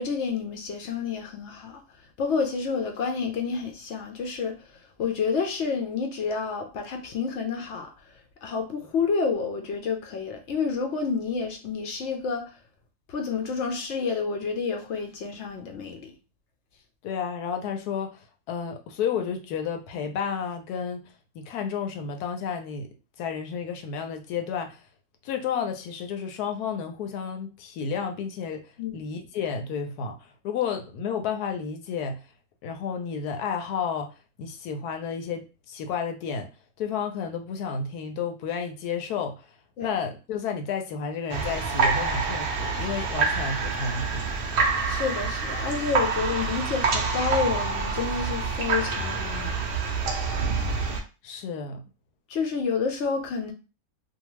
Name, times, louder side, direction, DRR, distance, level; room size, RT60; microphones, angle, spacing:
voice 1, 0.0-1.8 2.2-4.6 5.0-7.9 8.4-12.5 13.1-16.1 28.8-29.0 39.8-39.9 44.8-49.6 52.3-53.5, left 5 dB, 65° left, 0.7 m, -29 dB
voice 2, 17.0-21.1 21.3-22.9 23.2-24.8 25.2-28.7 28.9-32.2 32.6-36.5 36.8-39.5 39.8-44.3 51.2-51.8, left 6 dB, 90° left, 1.1 m, -31 dB
sound 1, 41.3-51.0, right 4 dB, 70° right, 0.5 m, -27 dB
2.6 x 2.3 x 3.0 m
omnidirectional pair, 1.6 m